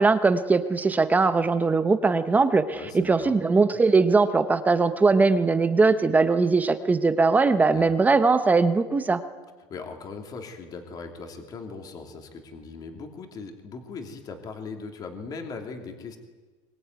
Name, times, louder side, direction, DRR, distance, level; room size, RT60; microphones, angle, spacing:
voice 1, 0.0-9.2, right 4 dB, 10° right, 10 dB, 0.9 m, -20 dB
voice 2, 2.7-3.3 7.7-7.9 9.7-16.2, left 4 dB, 25° left, 4 dB, 2.9 m, -39 dB
22.5 x 22.5 x 9.5 m, 1.3 s
supercardioid pair, 165°, 15 cm